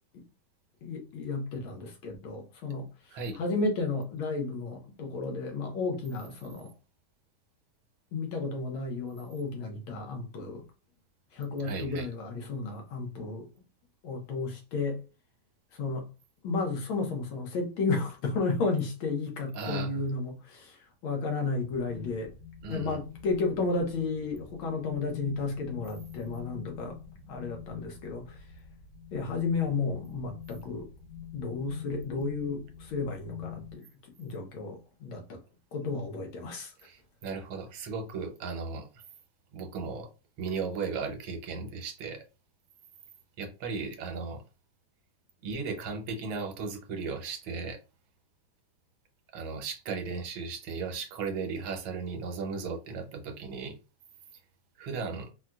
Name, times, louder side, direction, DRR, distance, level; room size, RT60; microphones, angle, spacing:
voice 1, 0.8-2.9 3.4-6.7 8.1-10.6 11.3-13.5 14.0-15.0 15.7-16.1 16.4-22.3 22.7-27.0 27.3-28.4 29.1-30.9 31.3-33.9 34.2-35.4 35.7-36.7, left 3 dB, 80° left, 1.7 m, -33 dB
voice 2, 11.6-12.1 19.5-20.0 22.6-23.0 36.8-38.9 39.5-40.1 40.4-42.2 43.4-44.4 45.4-47.8 49.3-53.8 54.8-55.3, right 4 dB, 75° right, 1.5 m, -36 dB
sound 1, 21.6-33.8, left 8 dB, 55° left, 1.9 m, -45 dB
4.2 x 2.3 x 2.3 m
omnidirectional pair, 2.3 m